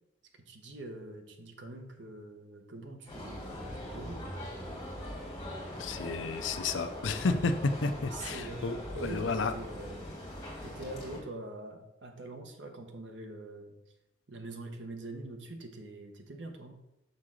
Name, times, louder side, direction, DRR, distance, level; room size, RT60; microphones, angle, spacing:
voice 1, 0.5-4.4 8.1-10.1 10.6-13.7 14.3-16.8, right 2 dB, 70° right, 5 dB, 1.1 m, -44 dB
sound 1, 3.1-11.2, equal, 20° left, 2.5 m, -41 dB
voice 2, 5.8-9.5, left 3 dB, 80° left, 9 dB, 0.6 m, -31 dB
6.5 x 3.8 x 6.3 m, 0.89 s
head